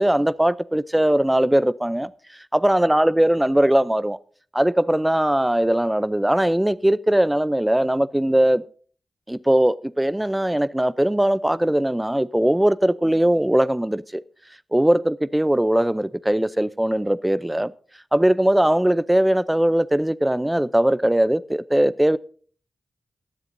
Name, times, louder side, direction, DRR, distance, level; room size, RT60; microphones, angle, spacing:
voice 1, 0.0-2.1 2.5-4.2 4.5-8.6 9.3-14.2 14.7-17.7 18.1-22.2, right 1 dB, 10° right, 0.5 m, -20 dB
18.5 x 13.0 x 2.7 m
wide cardioid pair, 85°, 0 cm